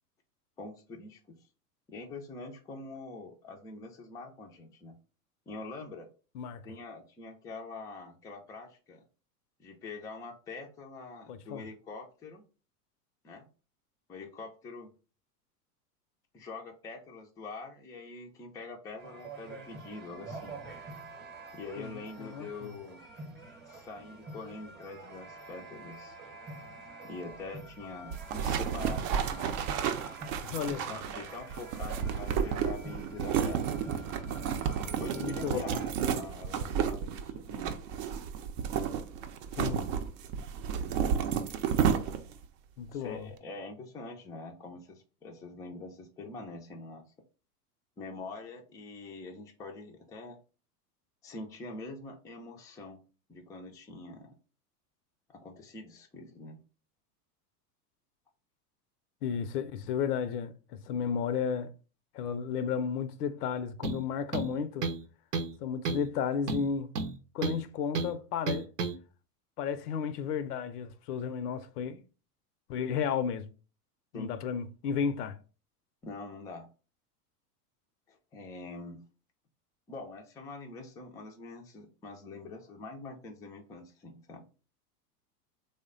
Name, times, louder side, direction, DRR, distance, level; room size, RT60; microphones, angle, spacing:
voice 1, 0.6-1.4 1.9-5.0 5.5-6.1 6.6-9.0 9.6-12.4 13.2-13.5 14.1-14.9 16.3-20.5 21.5-23.1 23.7-26.2 27.0-29.7 30.7-33.8 34.8-37.7 42.9-47.0 48.0-50.4 51.2-53.0 53.3-54.3 55.3-56.6 74.1-74.4 76.0-76.7 78.1-79.0 79.9-84.4, left 3 dB, 10° left, 0.3 m, -44 dB
voice 2, 11.3-11.7 21.8-22.8 30.4-30.8 35.1-35.7 39.6-39.9 42.8-43.3 59.2-61.7 62.1-64.9 65.6-66.9 67.3-68.7 69.6-72.0 72.7-73.5 74.1-75.4, left 7 dB, 80° left, 0.6 m, -33 dB
sound 1, 19.0-35.9, right 2 dB, 20° right, 0.8 m, -48 dB
sound 2, 28.1-42.4, right 8 dB, 55° right, 0.6 m, -32 dB
sound 3, 63.8-64.0 64.3-65.1 65.3-65.6 65.9-66.1 66.5-67.6 68.0-68.1 68.5-69.0, right 4 dB, 90° right, 0.7 m, -32 dB
3.3 x 2.1 x 3.7 m
hypercardioid pair, 95°, 46 cm